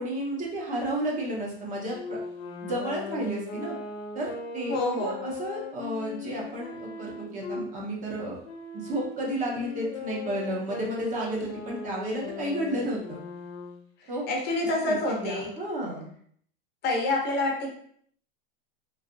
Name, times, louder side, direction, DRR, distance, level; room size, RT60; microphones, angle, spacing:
voice 1, 0.0-2.2 2.6-3.7 4.1-8.4 8.7-13.2 14.1-14.2 14.8-16.1, right 1 dB, 25° right, -2 dB, 0.8 m, -32 dB
Wind instrument woodwind instrument, 1.9-7.7 8.4-13.8, left 3 dB, 70° left, 0.9 m, -38 dB
voice 2, 4.7-5.2 14.0-15.5 16.8-17.7, left 2 dB, 35° left, 0 dB, 0.7 m, -27 dB
3.2 x 2.6 x 2.6 m, 0.62 s
supercardioid pair, 125°, 30 cm